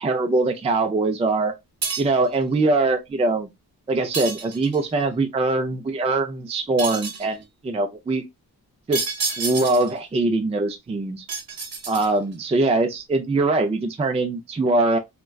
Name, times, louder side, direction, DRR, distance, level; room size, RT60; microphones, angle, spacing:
voice 1, 0.0-1.5 2.0-3.5 3.9-8.3 8.9-9.1 9.4-11.2 11.9-15.0, right 2 dB, 20° right, 0.3 m, -22 dB
sound 1, 1.8-2.3 4.1-4.9 6.8-7.3 8.9-10.0 11.3-12.3, right 4 dB, 65° right, 0.8 m, -29 dB
3.6 x 2.2 x 2.2 m
wide cardioid pair, 130°, 38 cm